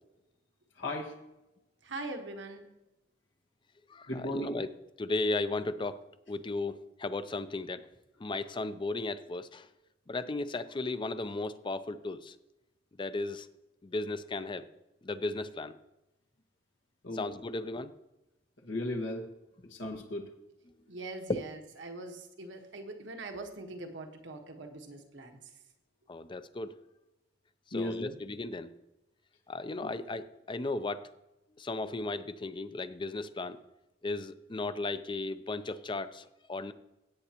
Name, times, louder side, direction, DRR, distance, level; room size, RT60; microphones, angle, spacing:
voice 1, 0.8-1.1 4.1-4.5 17.0-17.3 18.6-19.3 19.7-20.3 27.7-28.1 29.8-29.9, left 1 dB, 85° left, 0 dB, 1.6 m, -35 dB
voice 2, 1.8-2.6 20.9-25.4, right 2 dB, 80° right, 4 dB, 1.4 m, -42 dB
voice 3, 3.9-4.7 5.0-6.0 6.3-7.8 8.2-9.7 10.1-12.3 13.0-13.5 13.8-14.7 15.0-15.8 17.1-17.9 21.3-21.4 26.1-26.7 27.7-28.7 29.5-31.1 31.6-33.6 34.0-36.7, left 2 dB, 25° left, 12 dB, 0.5 m, -35 dB
16.5 x 8.5 x 3.0 m, 0.93 s
head